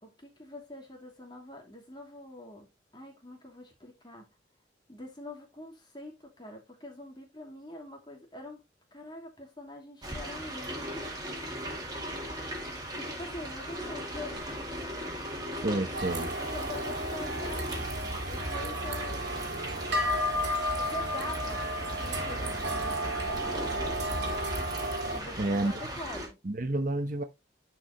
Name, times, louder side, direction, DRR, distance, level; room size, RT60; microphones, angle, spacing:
voice 1, 0.0-2.7 2.9-4.3 4.9-8.6 8.9-11.2 12.9-14.7 16.5-17.7 18.3-19.7 20.8-21.7 22.0-24.1 25.1-26.4, left 1 dB, 25° left, 2.7 m, -45 dB
sound 1, 10.0-26.3, right 1 dB, 20° right, 2.4 m, -38 dB
voice 2, 15.6-16.3 25.4-25.7 26.4-27.2, right 2 dB, 45° right, 0.9 m, -29 dB
sound 2, 15.9-25.2, equal, 65° right, 2.0 m, -33 dB
10.0 x 4.8 x 3.0 m
head